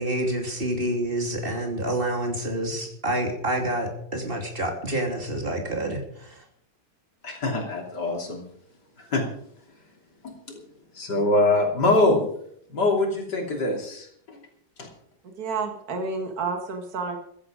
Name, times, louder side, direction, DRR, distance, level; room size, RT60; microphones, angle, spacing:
voice 1, 0.0-6.0, right 1 dB, 35° right, 2 dB, 3.1 m, -27 dB
voice 2, 7.2-8.4 9.1-9.2 10.2-10.6 11.0-12.2 12.7-14.4 14.8-14.9, left 2 dB, 85° left, 1 dB, 3.7 m, -24 dB
voice 3, 15.2-17.2, right 4 dB, 65° right, 4 dB, 2.2 m, -30 dB
14.5 x 14.5 x 5.0 m, 0.67 s
omnidirectional pair, 1.8 m